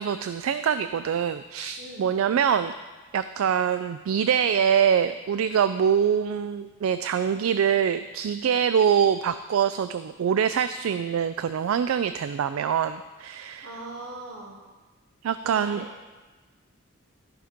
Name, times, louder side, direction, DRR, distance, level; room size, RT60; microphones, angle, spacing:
voice 1, 0.0-2.7 3.1-13.7 15.2-15.8, right 8 dB, 80° right, 11 dB, 0.3 m, -24 dB
voice 2, 1.8-2.1 13.6-14.6 15.2-15.9, right 2 dB, 65° right, -1 dB, 1.1 m, -40 dB
13.5 x 5.1 x 5.1 m, 1.2 s
head